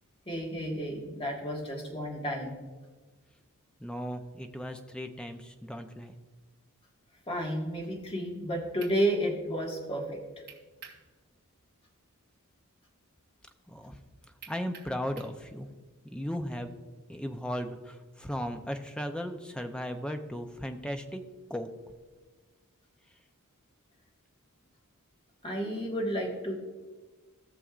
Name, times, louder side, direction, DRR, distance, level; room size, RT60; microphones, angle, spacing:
voice 1, 0.2-2.5 7.3-10.2 25.4-26.5, equal, 25° left, -1 dB, 1.7 m, -31 dB
voice 2, 3.8-6.1 13.7-14.0 14.5-15.7 16.0-16.7 17.1-21.2 21.5-21.7, equal, 5° left, 6 dB, 0.6 m, -36 dB
sound 1, 8.8-9.0 10.5-11.0 11.4-11.5 14.4-15.4, right 7 dB, 50° right, 2.7 m, -48 dB
17.0 x 6.8 x 2.5 m, 1.3 s
head